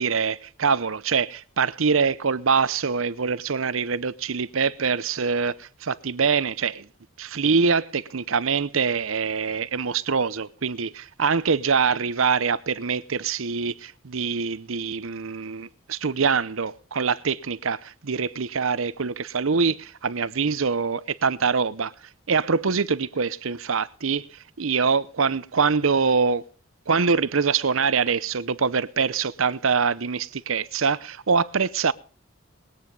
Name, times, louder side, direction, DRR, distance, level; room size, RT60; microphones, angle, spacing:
voice 1, 0.0-6.9 7.2-21.9 22.3-26.4 26.9-31.9, right 5 dB, 80° right, 0.8 m, -24 dB
20.5 x 9.4 x 5.4 m
head